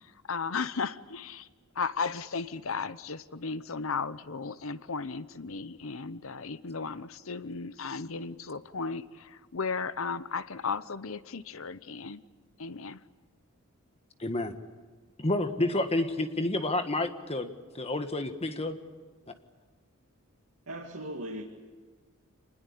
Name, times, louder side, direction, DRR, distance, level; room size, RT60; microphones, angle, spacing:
voice 1, 0.0-1.5 1.7-12.2 12.6-13.0, left 5 dB, 70° left, 15 dB, 0.9 m, -35 dB
voice 2, 14.2-14.5 15.2-18.8, left 2 dB, 30° left, 8 dB, 1.5 m, -29 dB
voice 3, 20.7-21.4, right 1 dB, 75° right, 0 dB, 2.3 m, -38 dB
26.0 x 20.5 x 8.5 m, 1.4 s
head